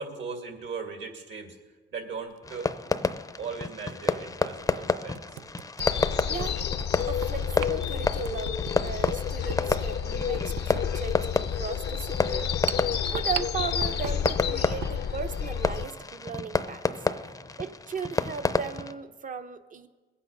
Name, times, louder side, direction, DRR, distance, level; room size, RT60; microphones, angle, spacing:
voice 1, 0.0-1.6 1.9-2.7 3.4-5.4 10.2-10.3 12.3-12.6, right 5 dB, 65° right, 4 dB, 2.3 m, -38 dB
sound 1, 2.2-2.4 3.8-3.9 4.5-4.6 5.1-15.0, right 13 dB, 85° right, 0.4 m, -40 dB
Fireworks, 2.4-18.9, left 3 dB, 15° left, 0.6 m, -31 dB
sound 2, 5.8-15.9, left 8 dB, 55° left, 0.7 m, -30 dB
voice 2, 7.1-11.2 11.5-12.5 13.1-16.8 17.6-19.9, right 6 dB, 40° right, 10 dB, 0.9 m, -37 dB
20.5 x 8.4 x 5.4 m, 1.4 s
cardioid pair, 90°, 20 cm